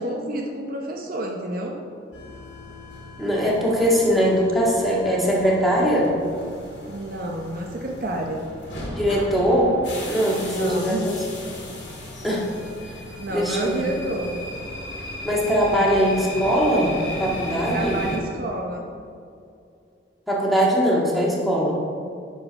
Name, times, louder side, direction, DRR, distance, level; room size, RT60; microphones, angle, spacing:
voice 1, 0.0-1.8 6.9-8.5 10.6-11.2 13.2-14.4 17.7-18.9, right 1 dB, 55° right, 1 dB, 0.8 m, -29 dB
sound 1, 2.1-18.2, left 1 dB, 85° left, 2.2 m, -36 dB
voice 2, 3.2-6.1 8.9-9.8 10.1-11.1 12.2-12.5 13.3-13.9 15.2-18.0 20.3-21.7, equal, ahead, -5 dB, 1.7 m, -21 dB
10.5 x 4.6 x 5.5 m, 2.5 s
head